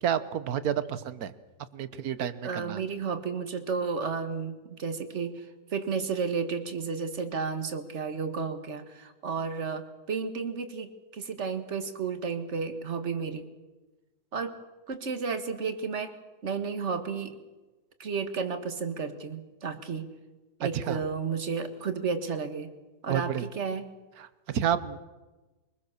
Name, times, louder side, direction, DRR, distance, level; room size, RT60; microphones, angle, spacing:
voice 1, 0.0-1.3 1.7-2.8 20.6-21.0 23.1-23.5 24.2-25.0, right 9 dB, 65° right, 14 dB, 1.4 m, -30 dB
voice 2, 2.4-13.4 14.3-14.5 14.9-16.2 16.4-17.4 18.0-20.1 20.6-22.7 23.0-23.9, right 5 dB, 45° right, 10 dB, 1.8 m, -32 dB
23.0 x 20.5 x 6.6 m, 1.2 s
omnidirectional pair, 1.8 m